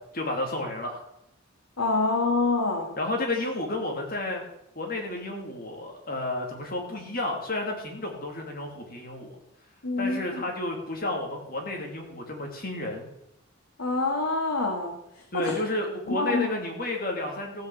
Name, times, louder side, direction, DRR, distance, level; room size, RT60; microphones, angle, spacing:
voice 1, 0.1-1.0 3.0-4.4 4.7-9.3 10.0-13.1 15.3-17.7, left 2 dB, 40° left, 1 dB, 2.7 m, -31 dB
voice 2, 1.8-2.9 9.8-10.4 13.8-15.0 15.3-15.5 16.1-16.5, left 3 dB, 85° left, 1 dB, 1.8 m, -26 dB
15.0 x 6.0 x 7.6 m, 0.80 s
head